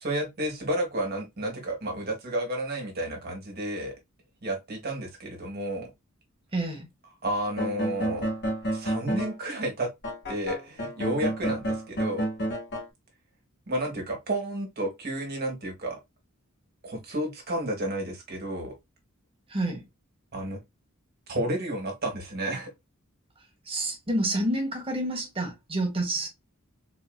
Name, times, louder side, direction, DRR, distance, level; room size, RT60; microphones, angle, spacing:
voice 1, 0.0-3.9 4.4-5.9 7.2-8.3 8.7-9.9 10.3-12.3 13.7-16.0 16.8-18.7 20.3-20.6 21.3-22.7, right 1 dB, 45° right, 1.6 m, -31 dB
voice 2, 6.5-6.9 19.5-19.8 23.7-26.3, right 1 dB, 25° right, 1.2 m, -28 dB
sound 1, 7.5-9.4 10.0-12.9, right 1 dB, 55° left, 1.4 m, -30 dB
4.2 x 2.8 x 2.2 m
head